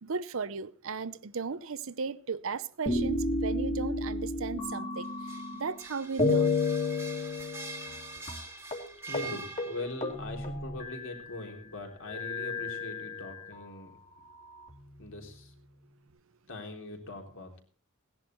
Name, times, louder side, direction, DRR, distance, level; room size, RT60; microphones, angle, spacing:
voice 1, 0.0-5.1 5.6-6.6, right 5 dB, 65° right, 0.7 m, -35 dB
sound 1, 2.9-5.8 6.2-8.0 8.3-8.4 8.7-8.9 9.1-9.3 9.6-11.3 12.1-13.6 14.4-15.3, left 3 dB, 35° left, 2.5 m, -32 dB
sound 2, 5.0-10.2, right 3 dB, 10° right, 1.5 m, -44 dB
voice 2, 9.1-13.9 15.0-15.5 16.5-17.6, left 2 dB, 60° left, 3.5 m, -41 dB
17.5 x 10.5 x 4.5 m
head